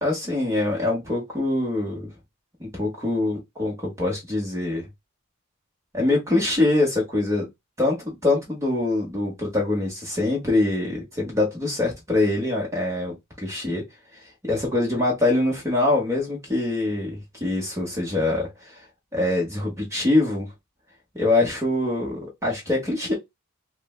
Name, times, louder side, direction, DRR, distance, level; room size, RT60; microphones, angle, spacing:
voice 1, 0.0-2.1 2.6-4.9 5.9-7.5 7.8-13.8 14.4-18.7 19.1-20.5 21.1-23.1, left 2 dB, 15° right, 1.0 m, -24 dB
4.2 x 2.2 x 2.3 m
head